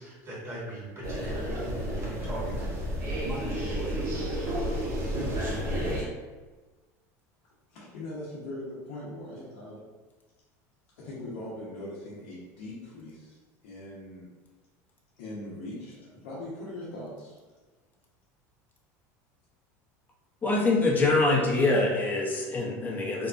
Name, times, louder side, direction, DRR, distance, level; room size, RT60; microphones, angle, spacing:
voice 1, 0.0-2.8 3.2-4.3, right 1 dB, 35° right, -6 dB, 1.0 m, -39 dB
sound 1, 1.0-6.0, equal, 85° right, 0.9 m, -31 dB
voice 2, 7.7-9.8 11.0-13.4 13.6-14.3 15.2-17.4, left 1 dB, 75° left, -7 dB, 0.7 m, -40 dB
voice 3, 20.4-23.3, left 2 dB, 20° left, -2 dB, 0.6 m, -24 dB
2.8 x 2.2 x 2.5 m, 1.2 s
supercardioid pair, 100°, 8 cm